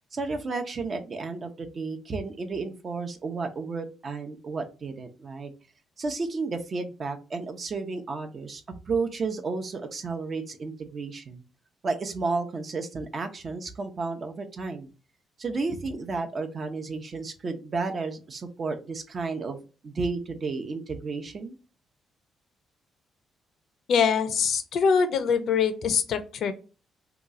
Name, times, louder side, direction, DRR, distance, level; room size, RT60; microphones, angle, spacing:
voice 1, 0.1-5.5 6.0-11.4 11.8-14.9 15.4-19.6 19.8-21.6, right 4 dB, 45° right, 5 dB, 0.7 m, -32 dB
voice 2, 23.9-26.5, left 6 dB, 70° left, 10 dB, 0.5 m, -23 dB
3.0 x 2.3 x 3.7 m, 0.34 s
cardioid pair, 90°, 0 cm